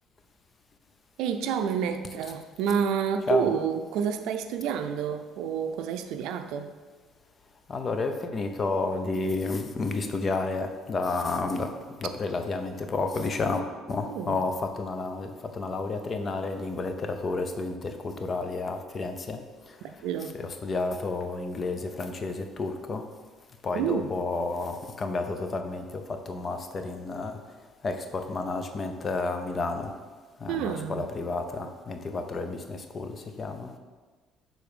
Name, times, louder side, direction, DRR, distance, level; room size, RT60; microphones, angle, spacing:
voice 1, 1.2-6.7 14.1-14.4 19.8-20.3 23.7-24.1 30.5-31.1, right 7 dB, 80° right, 8 dB, 0.4 m, -29 dB
voice 2, 7.7-11.7 12.0-19.4 19.6-20.0 20.3-23.0 23.6-27.4 27.8-29.9 30.4-33.7, left 3 dB, 30° left, 6 dB, 0.6 m, -31 dB
6.9 x 3.9 x 5.0 m, 1.4 s
cardioid pair, 115°, 0 cm